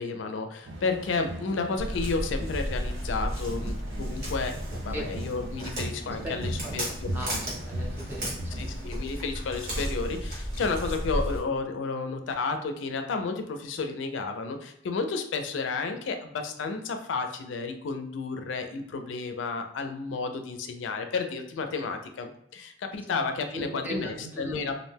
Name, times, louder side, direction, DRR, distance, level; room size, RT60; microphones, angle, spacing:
voice 1, 0.0-7.1 8.5-24.7, left 4 dB, 90° left, 6 dB, 0.4 m, -32 dB
sound 1, 0.7-8.9, right 1 dB, 75° right, 0.5 m, -39 dB
Walk footsteps, 1.8-11.4, equal, 60° right, 1.3 m, -34 dB
voice 2, 7.1-8.6 23.5-24.7, equal, 10° right, -3 dB, 0.6 m, -38 dB
2.5 x 2.1 x 3.2 m, 0.74 s
head